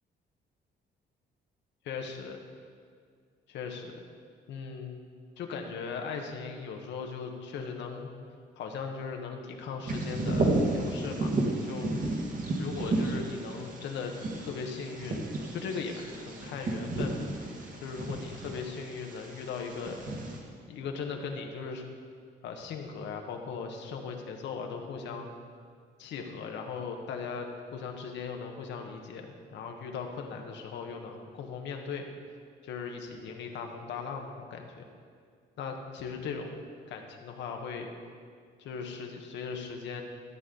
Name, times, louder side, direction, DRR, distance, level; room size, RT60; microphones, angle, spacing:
voice 1, 1.8-2.4 3.5-4.0 4.5-5.0 5.4-8.1 8.6-11.3 11.6-11.9 12.6-14.1 14.4-15.2 15.5-17.2 17.8-20.0 20.7-21.8 22.4-25.3 26.0-32.1 32.6-34.8 35.6-36.6 36.9-37.9 38.6-40.0, left 5 dB, 85° left, 3 dB, 1.2 m, -38 dB
Bird vocalization bird call bird song, 9.9-20.4, right 2 dB, 45° right, 1.7 m, -32 dB
13.0 x 8.2 x 3.9 m, 2.1 s
cardioid pair, 115°, 18 cm